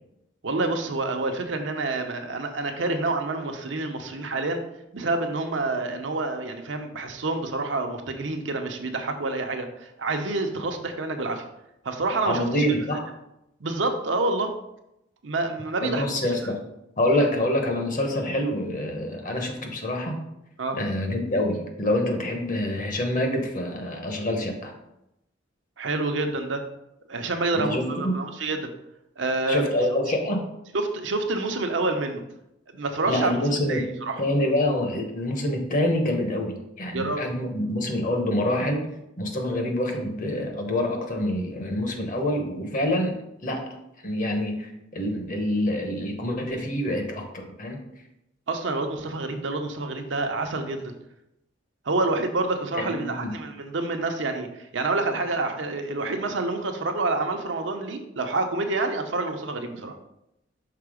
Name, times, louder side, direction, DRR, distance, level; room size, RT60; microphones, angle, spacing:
voice 1, 0.4-4.6 4.9-11.4 11.8-12.8 13.6-14.5 15.2-16.5 20.6-20.8 25.8-26.6 27.1-28.7 29.2-29.8 30.7-32.2 32.7-34.2 36.9-37.2 48.5-50.9 51.9-60.0, right 2 dB, 75° right, 5 dB, 0.8 m, -28 dB
voice 2, 12.3-13.0 15.8-16.6 17.0-20.2 20.7-24.7 27.5-28.2 29.5-30.5 33.1-38.9 39.2-43.2 43.4-43.6 44.0-47.8 52.8-53.3, left 1 dB, 45° left, 3 dB, 1.1 m, -26 dB
5.8 x 3.8 x 5.0 m, 0.85 s
head